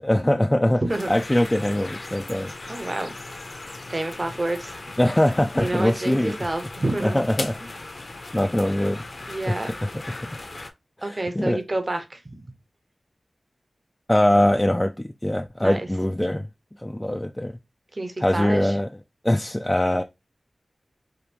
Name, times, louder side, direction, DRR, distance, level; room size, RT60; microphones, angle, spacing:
voice 1, 0.0-0.8 1.1-2.5 5.0-6.3 7.0-7.5 8.3-9.0 9.5-10.3 11.0-11.6 14.1-16.5 16.8-17.5 18.2-18.9 19.2-20.0, left 1 dB, 15° left, 0.4 m, -22 dB
voice 2, 0.8-1.1 2.7-3.2 3.9-4.8 5.6-7.2 9.3-9.7 11.0-12.4 15.6-15.9 17.9-18.7, right 2 dB, 40° right, 0.9 m, -28 dB
sound 1, 0.9-10.7, left 2 dB, 55° left, 0.7 m, -38 dB
4.9 x 2.6 x 2.9 m
wide cardioid pair, 80°, 0 cm